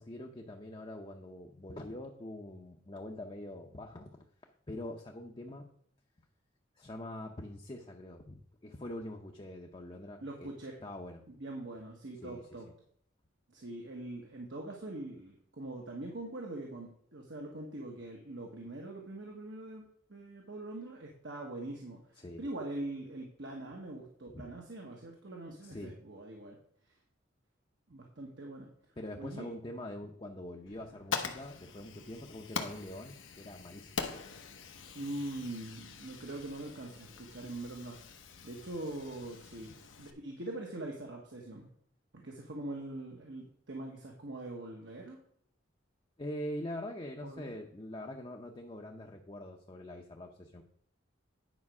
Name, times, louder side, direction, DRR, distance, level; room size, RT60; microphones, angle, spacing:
voice 1, 0.0-4.2 4.7-5.7 6.8-10.5 10.8-11.2 12.2-12.4 22.2-22.4 24.3-24.4 25.6-26.0 29.0-34.1 39.6-39.8 46.2-50.6, left 1 dB, 25° left, 2 dB, 0.6 m, -44 dB
voice 2, 10.2-10.8 11.3-12.7 13.5-26.6 27.9-28.7 29.1-29.5 34.9-39.7 40.0-41.7 42.1-45.2 47.2-47.5, right 2 dB, 70° right, 0 dB, 1.3 m, -43 dB
Fire, 30.7-40.1, left 5 dB, 90° left, 1.0 m, -43 dB
9.7 x 5.2 x 4.8 m, 0.66 s
head